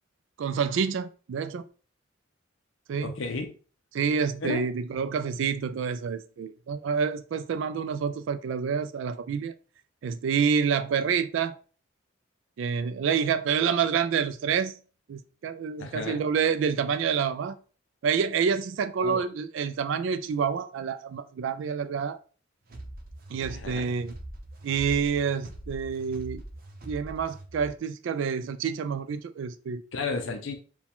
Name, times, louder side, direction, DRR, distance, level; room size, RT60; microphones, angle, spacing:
voice 1, 0.4-1.6 2.9-3.1 3.9-9.5 10.0-11.6 12.6-14.7 15.1-17.6 18.0-22.2 23.3-24.1 24.6-26.4 26.9-29.8, right 6 dB, 70° right, 0.3 m, -28 dB
voice 2, 3.0-3.6 4.4-4.7 15.8-16.3 19.0-19.2 23.5-24.0 29.9-30.6, left 3 dB, 75° left, 0.6 m, -33 dB
sound 1, 22.7-27.7, right 1 dB, 50° right, 0.7 m, -42 dB
4.7 x 2.2 x 3.5 m
head